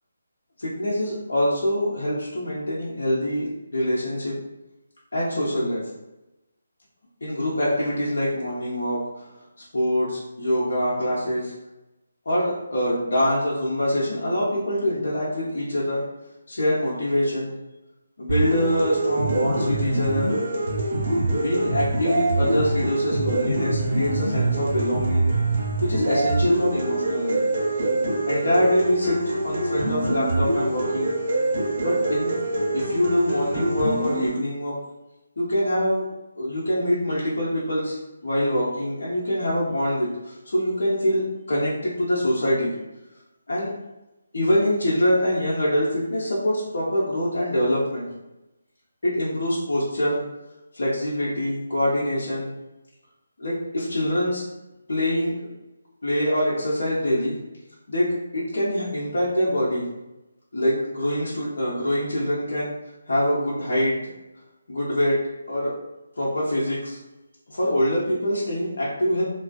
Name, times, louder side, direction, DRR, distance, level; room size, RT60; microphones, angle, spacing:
voice 1, 0.6-4.3 5.1-5.8 7.2-9.2 9.7-11.5 12.2-16.0 16.5-17.5 18.2-20.3 21.4-25.4 25.8-27.4 28.3-29.2 29.4-31.1 31.8-32.3 32.7-34.8 35.4-36.1 36.4-38.0 38.2-42.7 43.5-43.7 44.3-48.1 49.0-50.2 50.7-52.5 53.4-54.4 54.9-55.4 56.0-57.4 57.9-58.1 58.3-59.8 60.5-62.7 63.1-64.0 64.7-65.2 65.5-65.7 66.2-67.0 67.5-69.2, equal, 70° left, -7 dB, 0.8 m, -24 dB
sound 1, 18.3-34.3, right 2 dB, 35° right, 1.1 m, -24 dB
2.3 x 2.3 x 2.4 m, 0.96 s
figure-of-eight pair, 165°, 0 cm